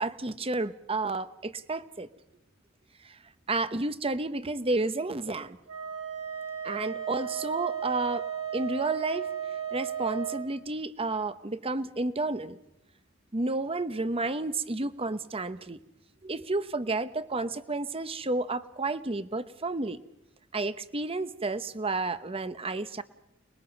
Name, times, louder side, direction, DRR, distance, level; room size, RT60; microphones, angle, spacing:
voice 1, 0.0-2.1 3.0-3.2 3.5-5.6 6.6-8.3 8.5-9.3 9.7-12.6 13.3-15.8 16.2-20.0 20.5-23.0, right 2 dB, 30° right, 12 dB, 1.0 m, -31 dB
Wind instrument woodwind instrument, 5.7-10.5, right 8 dB, 85° right, 7.3 m, -35 dB
29.5 x 21.0 x 5.3 m, 0.86 s
head